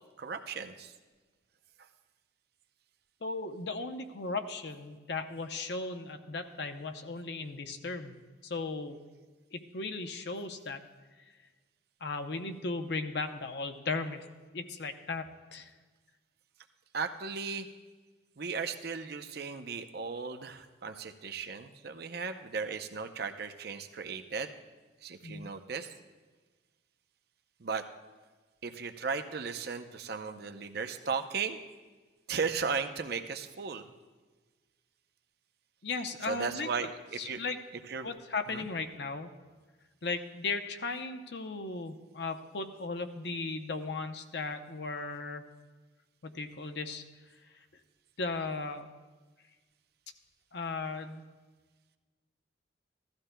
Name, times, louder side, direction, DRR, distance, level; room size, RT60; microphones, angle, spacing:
voice 1, 0.2-0.9 16.9-17.7 18.4-24.5 25.0-25.9 27.6-27.8 28.6-31.6 32.3-33.9 36.2-37.4 37.9-38.1 38.5-38.7, right 5 dB, 55° right, 7 dB, 0.6 m, -36 dB
voice 2, 3.2-8.1 8.4-9.0 9.5-10.8 12.0-14.2 14.5-15.7 25.2-25.5 35.8-36.7 37.2-37.6 38.0-39.3 40.0-45.5 46.2-47.0 48.2-48.9 50.5-51.2, left 3 dB, 60° left, 6 dB, 0.7 m, -36 dB
16.0 x 13.0 x 2.2 m, 1.3 s
head